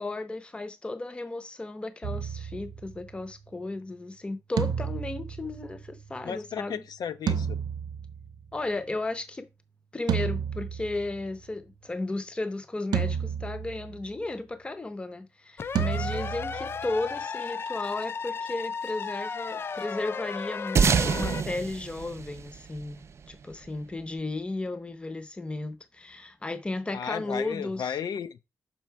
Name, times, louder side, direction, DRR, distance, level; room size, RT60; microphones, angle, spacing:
voice 1, 0.0-6.8 8.5-9.5 9.9-27.9, left 2 dB, 15° left, 0.7 m, -34 dB
sound 1, 2.0-3.3 4.6-6.3 7.3-8.6 10.1-11.5 12.9-14.1 15.8-17.2, right 7 dB, 90° right, 0.7 m, -32 dB
voice 2, 6.2-7.6 26.9-28.4, left 7 dB, 75° left, 0.7 m, -34 dB
sound 2, 15.6-21.4, left 5 dB, 35° left, 0.3 m, -34 dB
sound 3, 20.8-23.5, right 6 dB, 40° right, 0.4 m, -26 dB
6.2 x 5.7 x 4.6 m
wide cardioid pair, 180°, 7 cm